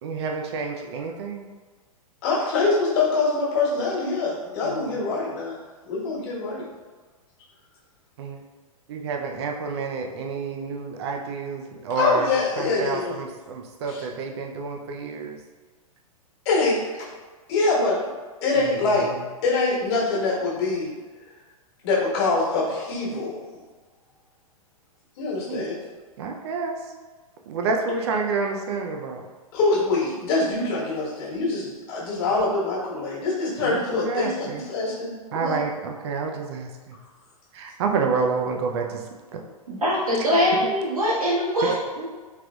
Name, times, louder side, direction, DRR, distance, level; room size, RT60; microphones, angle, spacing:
voice 1, 0.0-1.5 4.6-4.8 8.2-8.4 8.9-12.3 12.6-15.4 18.6-19.1 25.5-25.6 26.2-26.7 27.5-29.2 33.6-34.6 35.3-37.0 37.5-39.0 39.3-39.4 40.2-40.3 41.6-41.7, right 4 dB, 45° right, 2 dB, 0.5 m, -29 dB
voice 2, 2.2-5.6 5.8-6.6 11.9-13.2 13.9-14.0 16.4-16.7 17.5-18.0 18.4-19.1 19.4-20.9 21.8-23.3 25.2-25.7 29.5-35.6, left 3 dB, 45° left, -5 dB, 1.3 m, -24 dB
voice 3, 39.7-42.1, equal, 70° right, -7 dB, 1.4 m, -23 dB
3.8 x 3.3 x 2.3 m, 1.4 s
figure-of-eight pair, 105°, 19 cm